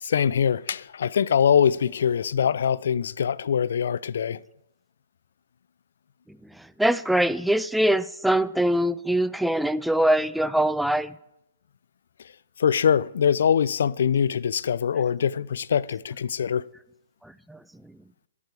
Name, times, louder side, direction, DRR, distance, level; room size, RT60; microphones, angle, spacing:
voice 1, 0.0-4.4 12.6-16.6, left 8 dB, 70° left, 0.4 m, -23 dB
voice 2, 6.8-11.1 17.5-17.6, right 1 dB, ahead, 0.4 m, -23 dB
11.5 x 6.2 x 8.2 m
hypercardioid pair, 130°, 0 cm